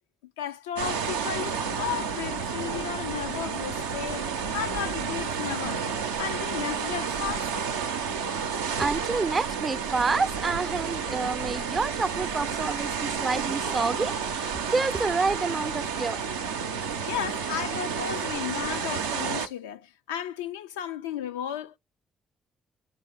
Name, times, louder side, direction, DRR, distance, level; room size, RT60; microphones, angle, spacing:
voice 1, 0.4-5.9 6.2-7.6 17.1-21.8, left 10 dB, 80° left, 0.3 m, -34 dB
sound 1, 0.8-19.5, right 6 dB, 85° right, 0.5 m, -31 dB
voice 2, 8.7-16.2, right 4 dB, 35° right, 0.4 m, -28 dB
10.5 x 3.6 x 3.9 m
figure-of-eight pair, 40°, 0 cm